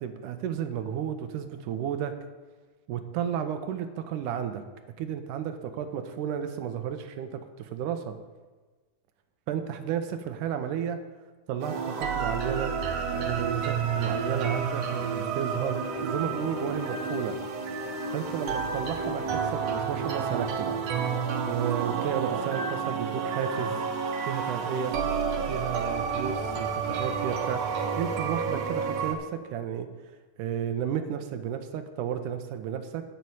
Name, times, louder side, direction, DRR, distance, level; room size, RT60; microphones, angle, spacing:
voice 1, 0.0-2.1 2.9-4.6 5.0-8.2 9.5-11.0 11.5-12.8 13.1-17.4 18.1-20.8 21.5-23.8 24.3-25.0 25.5-27.6 27.9-29.9 30.4-33.0, right 9 dB, 80° right, 8 dB, 2.3 m, -32 dB
sound 1, 11.6-29.1, right 5 dB, 65° right, 1.9 m, -30 dB
10.5 x 5.6 x 7.8 m, 1.3 s
omnidirectional pair, 3.7 m